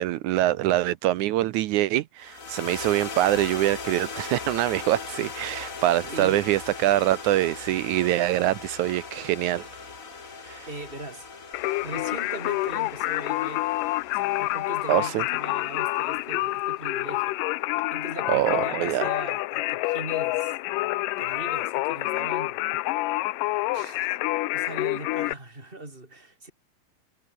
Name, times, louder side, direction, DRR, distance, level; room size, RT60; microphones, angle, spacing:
voice 1, 0.0-9.7 10.5-10.7 14.9-15.2 18.3-19.1 23.7-24.2, right 15 dB, 75° right, 1.8 m, -24 dB
sound 1, 2.2-16.6, left 4 dB, 30° left, 2.0 m, -40 dB
voice 2, 6.1-6.5 10.2-11.3 11.8-13.7 14.1-17.4 17.9-20.6 21.2-22.7 24.5-26.5, right 2 dB, 15° right, 6.3 m, -40 dB
Singing, 11.5-25.3, left 19 dB, 85° left, 2.2 m, -28 dB
omnidirectional pair, 4.0 m